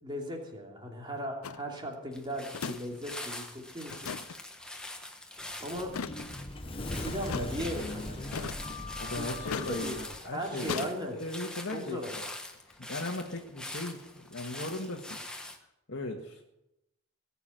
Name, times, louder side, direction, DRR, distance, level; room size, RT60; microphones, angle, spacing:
voice 1, 0.0-4.1 5.6-5.9 7.0-8.7 9.2-9.9 10.2-11.2 11.7-12.2, equal, 20° right, 1 dB, 2.8 m, -37 dB
sound 1, 1.4-1.6 2.5-2.8 3.1-3.2 3.9-4.4 5.9-6.3 7.2-7.5 8.3-8.7 9.4-9.8 10.7-10.9, left 6 dB, 80° left, 0.6 m, -37 dB
sound 2, 2.1-15.6, left 1 dB, 5° left, 1.4 m, -44 dB
Sliding door, 5.4-10.2, left 2 dB, 25° left, 0.9 m, -40 dB
voice 2, 9.0-12.2 12.6-15.2 15.9-16.4, left 1 dB, 60° left, 0 dB, 1.8 m, -38 dB
20.0 x 7.2 x 9.1 m, 0.88 s
head